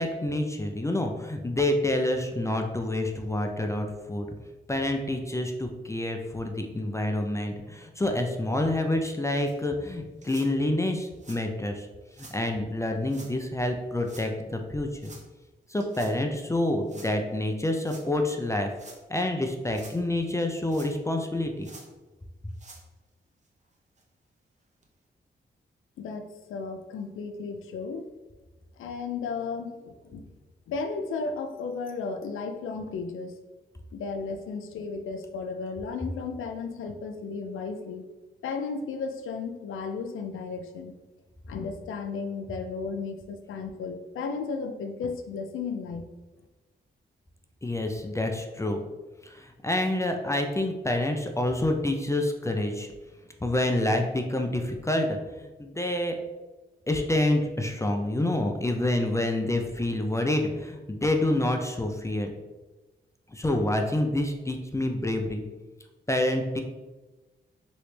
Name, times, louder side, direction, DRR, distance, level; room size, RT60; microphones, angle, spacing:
voice 1, 0.0-4.3 4.7-11.9 12.2-15.1 15.7-18.7 19.1-21.7 47.6-48.8 49.2-52.9 53.4-56.2 56.9-62.3 63.3-65.4 66.1-66.6, left 1 dB, 15° left, 3 dB, 0.4 m, -27 dB
sound 1, 9.5-9.6 10.2-10.5 11.1-11.4 12.1-12.4 13.1-13.3 14.0-14.3 15.0-15.3 15.8-16.2 16.9-17.1 17.8-18.1 18.7-19.0 19.6-20.0 20.7-21.2 21.6-21.9 22.5-22.8 23.5-23.6 24.0-24.1 24.8-24.9, right 3 dB, 35° right, 0.7 m, -49 dB
voice 2, 26.0-28.1 28.8-30.3 30.7-33.4 33.9-38.1 38.4-40.9 41.5-46.0, left 4 dB, 85° left, 6 dB, 0.4 m, -34 dB
3.1 x 2.9 x 3.2 m, 1.2 s
cardioid pair, 55°, 20 cm